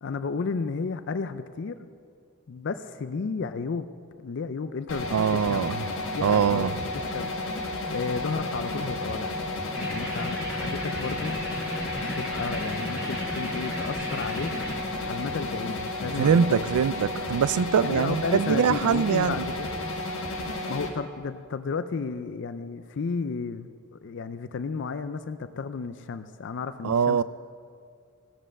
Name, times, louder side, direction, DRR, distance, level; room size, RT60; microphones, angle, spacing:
voice 1, 0.0-1.9 2.5-3.9 4.2-5.6 6.1-6.7 6.9-9.3 9.7-11.4 12.0-14.5 15.0-16.7 17.8-19.8 20.7-27.2, left 4 dB, 55° left, 0.4 m, -33 dB
sound 1, 4.9-20.9, left 2 dB, 70° left, 1.7 m, -32 dB
voice 2, 5.1-5.8 6.2-6.7 16.2-19.5 26.8-27.2, right 7 dB, 90° right, 0.4 m, -23 dB
sound 2, 9.7-14.7, equal, 5° right, 4.3 m, -36 dB
17.0 x 7.5 x 6.5 m
head